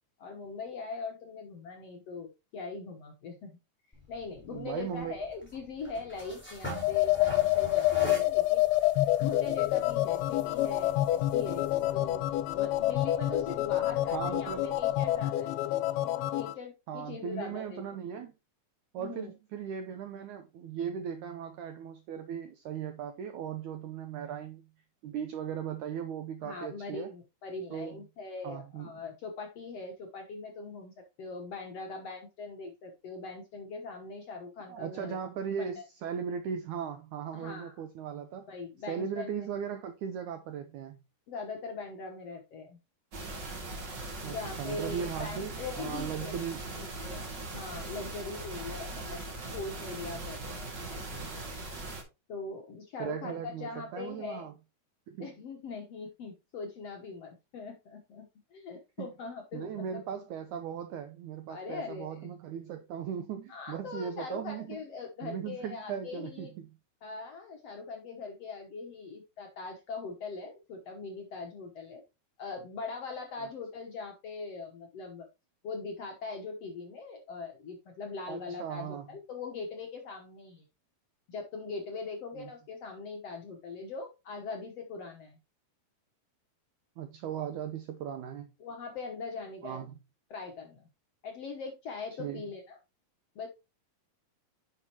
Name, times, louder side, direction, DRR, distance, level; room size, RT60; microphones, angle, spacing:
voice 1, 0.2-3.6 4.1-8.7 9.2-12.3 12.5-15.5 16.0-17.8 18.2-18.3 19.0-19.3 26.4-35.2 35.6-35.7 37.3-37.8 38.5-39.3 41.3-42.8 44.3-49.2 49.5-51.3 52.3-54.5 55.2-60.0 61.5-62.3 63.5-66.5 67.0-72.0 72.4-75.3 75.6-80.6 81.3-85.4 88.6-89.8 90.3-90.9 91.2-92.8 93.4-93.5, left 4 dB, 65° left, 1.6 m, -41 dB
sound 1, 3.9-15.2, equal, 5° left, 4.2 m, -46 dB
voice 2, 4.5-5.2 14.1-14.7 16.9-18.3 18.9-24.6 25.0-27.1 27.7-28.0 28.4-29.0 34.7-38.5 38.9-41.0 44.2-46.6 53.0-54.5 55.1-55.3 59.0-59.1 59.5-64.8 65.2-66.7 73.4-73.5 78.3-79.1 82.4-82.5 87.0-88.5 89.6-89.9 92.2-92.4, right 8 dB, 85° right, 1.7 m, -38 dB
sound 2, 6.7-16.5, left 15 dB, 85° left, 2.5 m, -28 dB
sound 3, 43.1-52.0, right 2 dB, 35° right, 2.2 m, -40 dB
10.0 x 6.4 x 3.0 m
omnidirectional pair, 4.4 m